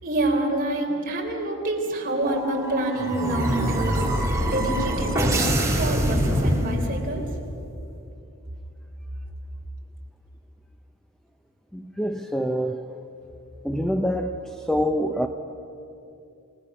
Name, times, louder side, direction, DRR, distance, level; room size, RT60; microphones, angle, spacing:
voice 1, 0.0-7.2, right 1 dB, 40° right, 3.6 m, -27 dB
sound 1, 2.2-7.2, right 1 dB, 15° right, 2.2 m, -24 dB
voice 2, 11.7-13.0 13.6-15.3, equal, ahead, 0.5 m, -26 dB
28.5 x 18.0 x 6.1 m
head